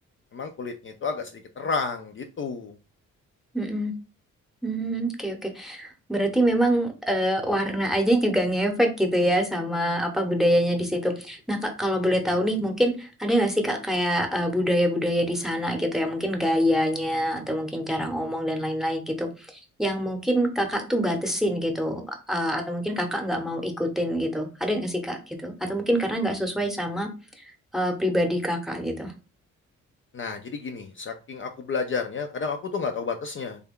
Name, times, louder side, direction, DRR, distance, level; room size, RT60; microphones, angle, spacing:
voice 1, 0.3-2.7 30.1-33.6, left 4 dB, 40° left, 5 dB, 0.4 m, -31 dB
voice 2, 3.5-3.9 4.6-19.3 19.8-27.1 27.4-29.1, equal, ahead, 4 dB, 0.8 m, -25 dB
3.3 x 2.3 x 3.6 m, 0.33 s
cardioid pair, 75°, 31 cm